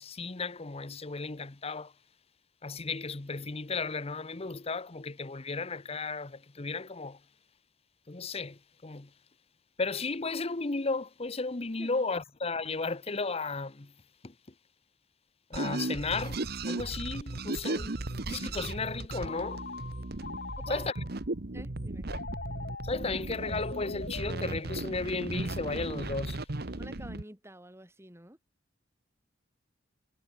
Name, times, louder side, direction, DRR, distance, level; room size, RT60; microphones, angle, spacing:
voice 1, 0.0-1.9 2.6-7.2 8.1-9.1 9.8-13.9 14.2-14.3 15.5-17.9 18.3-19.6 20.7-20.9 22.8-26.4, left 3 dB, 30° left, 0.9 m, -34 dB
sound 1, 15.5-27.2, right 2 dB, 55° right, 1.3 m, -36 dB
Telephone, 19.2-21.2 22.1-25.1, left 4 dB, 55° left, 1.9 m, -43 dB
voice 2, 20.6-20.9 21.5-22.1 26.8-28.4, right 1 dB, 15° right, 2.8 m, -47 dB
head